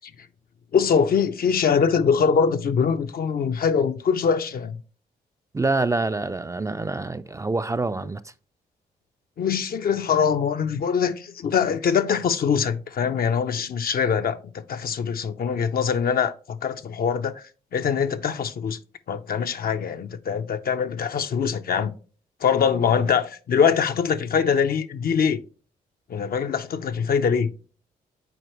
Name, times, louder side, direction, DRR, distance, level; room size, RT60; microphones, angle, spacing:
voice 1, 0.7-4.8 9.4-14.4 14.7-18.8 19.1-21.9 22.4-25.4 26.1-27.5, left 6 dB, 55° left, 0.6 m, -23 dB
voice 2, 5.5-8.3, right 3 dB, 15° right, 0.4 m, -26 dB
7.9 x 4.5 x 3.0 m
supercardioid pair, 50°, 18 cm